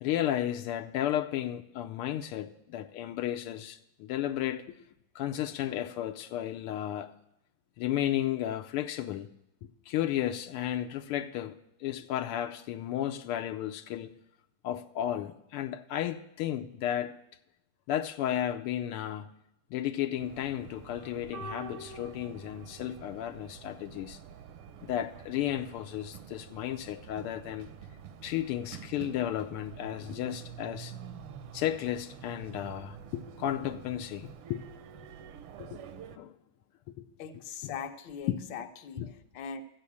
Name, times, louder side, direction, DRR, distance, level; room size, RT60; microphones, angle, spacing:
voice 1, 0.0-4.6 5.1-7.1 7.8-9.3 9.6-14.1 14.6-17.2 17.9-19.3 19.7-24.2 24.8-27.7 28.2-30.9 31.5-34.6 35.6-35.8 36.1-36.3 36.9-37.1 37.6-37.7 38.3-38.4 39.0-39.1, left 11 dB, 85° left, 1.6 m, -33 dB
sound 1, 20.2-36.2, right 7 dB, 85° right, 1.8 m, -47 dB
voice 2, 37.2-39.0 39.3-39.6, left 6 dB, 65° left, 1.6 m, -40 dB
13.0 x 8.2 x 8.5 m
omnidirectional pair, 2.4 m